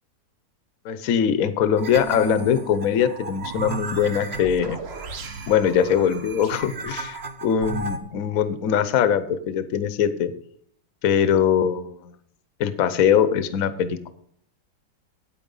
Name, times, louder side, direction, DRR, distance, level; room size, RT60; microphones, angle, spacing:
voice 1, 0.8-4.8 5.5-10.3 11.0-12.1 12.6-14.1, left 8 dB, 55° left, 13 dB, 1.0 m, -22 dB
sound 1, 1.8-8.0, right 4 dB, 45° right, 0.8 m, -34 dB
8.9 x 8.7 x 5.4 m, 0.65 s
omnidirectional pair, 2.2 m